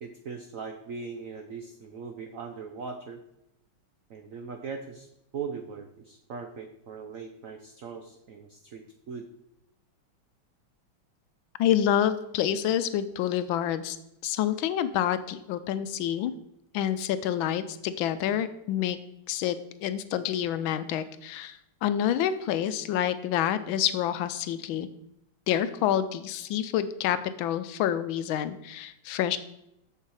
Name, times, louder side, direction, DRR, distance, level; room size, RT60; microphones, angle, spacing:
voice 1, 0.0-3.2 4.1-5.1 5.3-9.3, right 5 dB, 75° right, 5 dB, 0.7 m, -40 dB
voice 2, 11.6-14.0 14.2-16.3 16.7-19.0 19.3-24.9 25.5-29.4, left 10 dB, 80° left, 13 dB, 1.3 m, -28 dB
7.3 x 6.7 x 4.8 m, 0.82 s
omnidirectional pair, 2.3 m